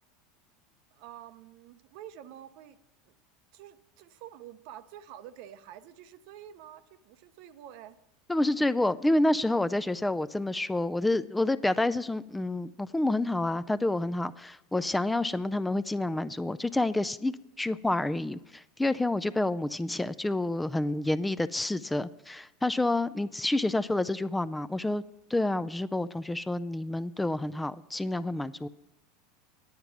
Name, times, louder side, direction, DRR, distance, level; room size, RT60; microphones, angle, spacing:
voice 1, 0.9-2.8 3.1-3.2 3.5-8.0 19.3-19.5, right 11 dB, 65° right, 12 dB, 0.6 m, -48 dB
voice 2, 8.3-25.0 25.3-28.7, left 2 dB, 10° left, 14 dB, 0.3 m, -28 dB
9.5 x 8.9 x 5.9 m, 0.93 s
hypercardioid pair, 105°, 0 cm